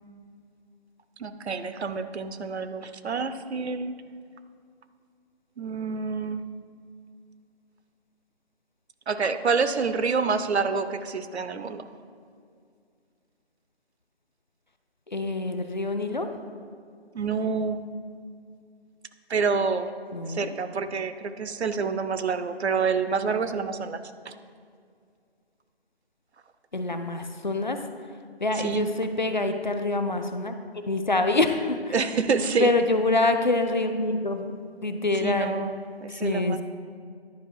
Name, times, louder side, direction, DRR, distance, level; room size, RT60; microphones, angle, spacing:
voice 1, 1.2-3.9 5.6-6.5 9.1-11.9 17.1-17.9 19.3-19.9 20.3-24.3 28.5-28.9 31.9-32.7 35.2-36.6, right 5 dB, 85° right, 11 dB, 0.6 m, -28 dB
voice 2, 15.1-16.3 20.1-20.5 26.7-27.8 28.4-31.9 32.6-35.5 36.1-36.6, left 2 dB, 45° left, 7 dB, 0.4 m, -26 dB
10.5 x 4.8 x 4.6 m, 2.2 s
figure-of-eight pair, 175°, 32 cm